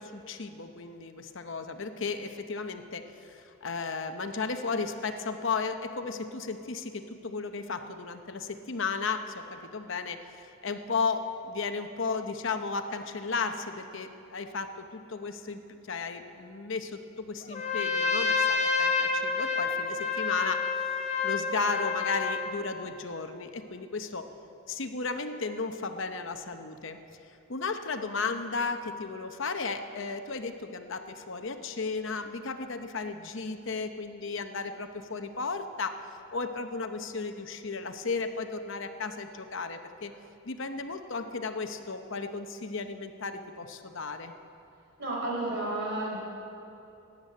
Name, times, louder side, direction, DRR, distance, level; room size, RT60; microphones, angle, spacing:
voice 1, 0.0-20.7 21.2-24.3 24.7-27.0 27.3-36.0 36.3-40.1 40.4-44.3, left 4 dB, 60° left, 8 dB, 0.8 m, -34 dB
Trumpet, 17.5-22.6, left 4 dB, 30° left, 1.1 m, -28 dB
voice 2, 45.0-46.2, right 2 dB, 55° right, -3 dB, 4.7 m, -31 dB
15.5 x 9.7 x 8.4 m, 2.9 s
head